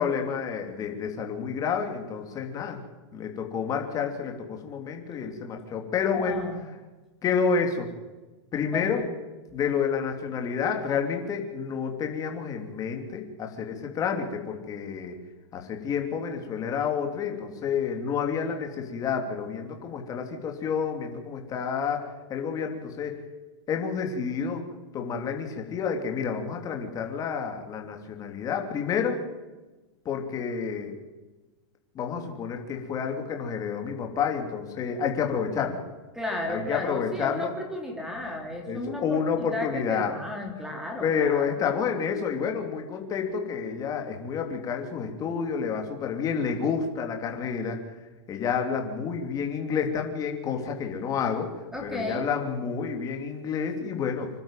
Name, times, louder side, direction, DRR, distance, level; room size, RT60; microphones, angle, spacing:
voice 1, 0.0-2.8 3.1-6.4 7.2-7.9 8.5-9.0 9.5-15.1 15.5-22.0 22.3-23.2 23.7-24.6 24.9-29.2 30.0-31.0 31.9-35.8 36.5-37.5 38.7-40.1 41.0-47.8 48.3-51.5 51.8-54.3, left 6 dB, 25° left, 3 dB, 3.2 m, -29 dB
voice 2, 6.1-6.6 8.7-9.1 36.1-41.5 51.7-52.3, left 1 dB, 5° right, 2 dB, 3.7 m, -34 dB
26.0 x 12.0 x 9.2 m, 1.2 s
supercardioid pair, 150°, 15 cm